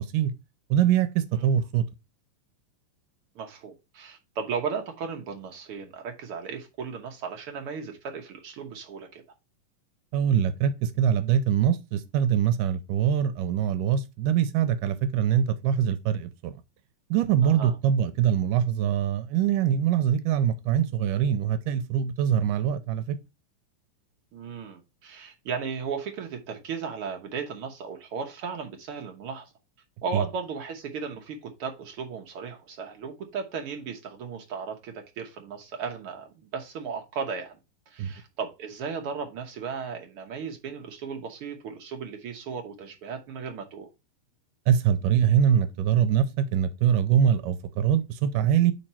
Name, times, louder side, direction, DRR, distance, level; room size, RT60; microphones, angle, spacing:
voice 1, 0.7-1.9 10.1-16.6 17.1-23.2 30.1-30.2 38.0-38.1 44.7-48.7, right 9 dB, 85° right, 2.2 m, -23 dB
voice 2, 3.3-9.2 17.4-17.7 24.3-29.5 30.0-37.6 37.9-43.9, right 5 dB, 65° right, 1.4 m, -35 dB
5.2 x 4.2 x 5.6 m
omnidirectional pair, 3.9 m